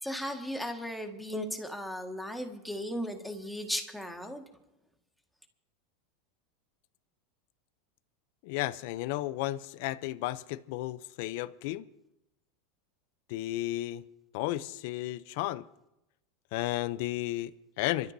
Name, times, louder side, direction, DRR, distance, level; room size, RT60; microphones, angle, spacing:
voice 1, 0.0-4.4, equal, ahead, 1.8 m, -36 dB
voice 2, 8.4-11.9 13.3-14.0 14.3-15.7 16.5-18.1, left 16 dB, 65° left, 0.6 m, -33 dB
26.5 x 13.0 x 2.8 m
supercardioid pair, 125°, 0 cm